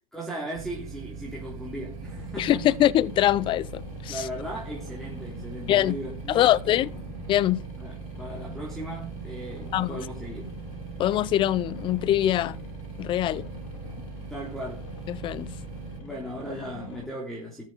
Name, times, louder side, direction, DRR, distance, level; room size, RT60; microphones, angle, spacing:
voice 1, 0.1-2.8 4.1-6.8 7.8-10.5 14.0-14.9 16.0-17.7, right 1 dB, ahead, 3.4 m, -37 dB
sound 1, 0.5-16.0, right 5 dB, 45° right, 3.4 m, -40 dB
sound 2, 1.9-17.0, left 2 dB, 60° left, 4.6 m, -43 dB
voice 2, 2.4-4.3 5.7-6.0 6.3-6.9 7.3-7.6 9.7-10.0 11.0-12.6 13.0-13.4 15.1-15.5, left 13 dB, 25° left, 0.6 m, -23 dB
13.5 x 7.6 x 5.0 m
hypercardioid pair, 115°, 18 cm